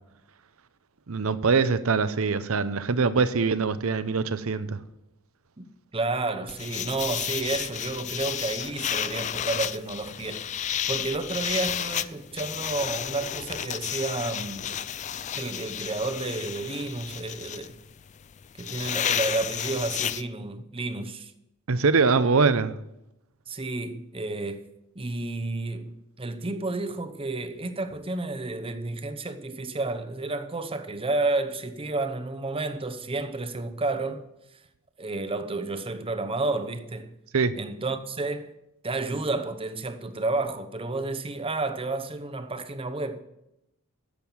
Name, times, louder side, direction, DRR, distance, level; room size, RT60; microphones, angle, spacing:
voice 1, 1.1-4.8 21.7-22.8 37.3-37.6, right 4 dB, 70° right, 0.7 m, -23 dB
voice 2, 5.9-10.5 10.9-14.8 15.3-17.8 18.6-21.3 23.5-24.7 25.0-34.2 35.0-37.2 37.6-38.5 38.8-43.2, right 2 dB, 25° right, 0.8 m, -31 dB
sound 1, 6.5-20.2, left 10 dB, 35° left, 0.3 m, -32 dB
10.5 x 7.5 x 7.1 m
head